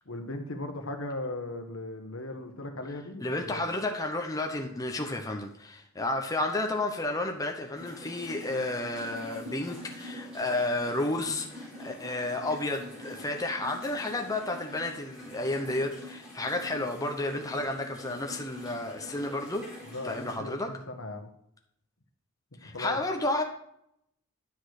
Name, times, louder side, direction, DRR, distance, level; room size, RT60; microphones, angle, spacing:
voice 1, 0.1-3.7 19.8-21.3 22.6-23.0, left 2 dB, 65° left, 6 dB, 1.2 m, -38 dB
voice 2, 3.2-19.7 20.0-20.7 22.6-23.4, left 2 dB, 15° left, 3 dB, 0.8 m, -31 dB
sound 1, 7.7-20.3, left 1 dB, 5° right, 4.2 m, -45 dB
10.0 x 6.3 x 4.9 m, 0.74 s
head